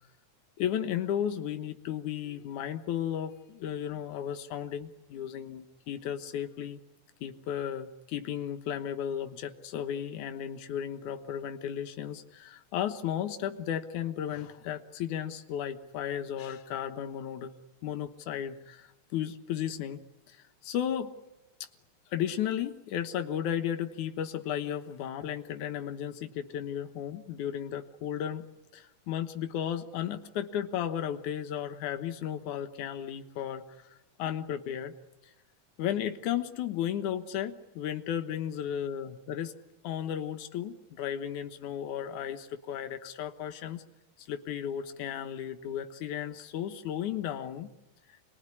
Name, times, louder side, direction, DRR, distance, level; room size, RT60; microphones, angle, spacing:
voice 1, 0.6-6.8 7.2-17.5 17.8-20.0 20.3-21.1 22.1-28.5 28.7-34.9 35.8-39.5 39.8-43.8 44.2-47.7, left 10 dB, 85° left, 7 dB, 2.7 m, -34 dB
27.0 x 21.5 x 9.8 m, 1.0 s
omnidirectional pair, 3.4 m